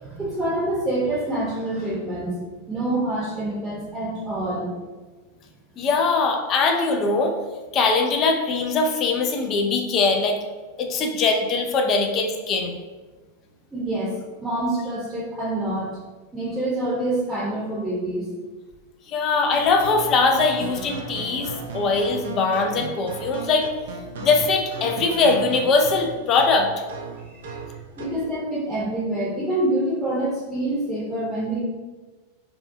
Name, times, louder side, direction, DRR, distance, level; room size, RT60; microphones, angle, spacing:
voice 1, 0.0-4.7 13.7-15.9 16.3-18.3 27.3-27.6 28.0-31.6, right 1 dB, 10° right, -7 dB, 0.7 m, -26 dB
voice 2, 5.8-7.4 7.7-10.4 10.8-12.8 19.1-23.7 24.2-26.7, left 4 dB, 35° left, 4 dB, 0.3 m, -21 dB
sound 1, 19.5-28.2, right 4 dB, 60° right, 0.3 m, -36 dB
2.5 x 2.2 x 2.6 m, 1.3 s
figure-of-eight pair, 90°, 0 cm